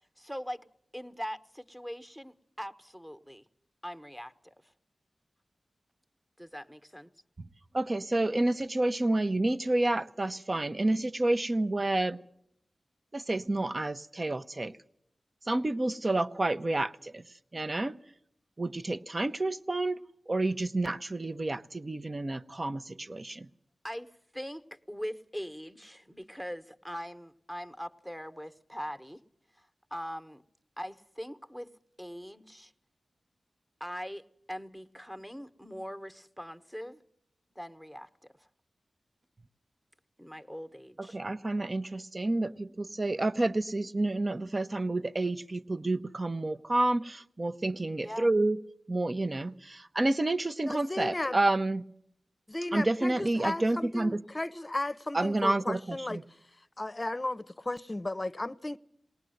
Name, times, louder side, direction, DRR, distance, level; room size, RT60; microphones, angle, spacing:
voice 1, 0.2-0.6 0.9-3.5 3.8-4.7 6.4-7.1 23.8-29.2 29.5-30.4 30.8-31.7 32.0-32.7 33.8-37.0 37.5-38.5 40.2-41.2 48.0-48.3, equal, 5° right, 1.2 m, -41 dB
voice 2, 7.7-12.2 13.1-14.8 15.5-17.2 17.5-18.0 18.6-20.0 20.3-23.5 41.0-48.6 48.9-51.8 52.7-54.2 55.1-56.2, right 2 dB, 40° right, 0.8 m, -29 dB
voice 3, 50.7-51.4 52.5-56.2 56.8-58.8, left 2 dB, 30° left, 0.8 m, -34 dB
20.5 x 18.5 x 7.9 m
cardioid pair, 50°, 0 cm